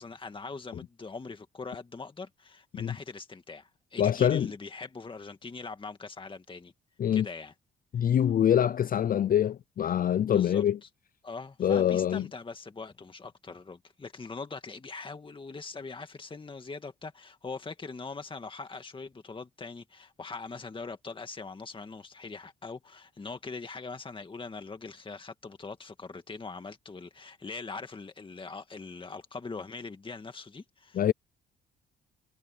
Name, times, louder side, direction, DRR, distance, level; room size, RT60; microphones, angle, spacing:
voice 1, 0.0-6.7 7.1-7.5 8.0-8.1 10.3-10.9 11.2-31.1, left 4 dB, 25° left, 2.0 m, -42 dB
voice 2, 4.0-4.5 7.0-7.3 7.9-10.8 11.6-12.3 30.9-31.1, left 10 dB, 45° left, 0.5 m, -25 dB
cardioid pair, 90°, 20 cm